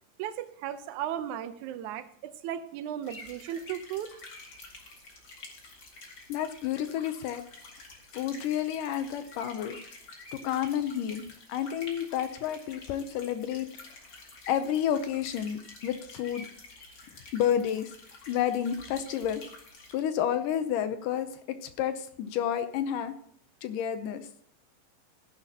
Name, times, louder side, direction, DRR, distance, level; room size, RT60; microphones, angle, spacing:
voice 1, 0.2-4.1, right 10 dB, 70° right, 10 dB, 2.0 m, -36 dB
sound 1, 3.0-19.9, left 3 dB, 35° left, 2.5 m, -49 dB
voice 2, 6.3-7.4 8.1-9.8 10.3-11.2 11.5-13.7 14.5-16.4 17.3-17.9 18.3-19.4 19.9-23.1 23.6-24.2, left 10 dB, 75° left, 10 dB, 2.3 m, -30 dB
15.5 x 11.0 x 2.9 m, 0.67 s
omnidirectional pair, 4.0 m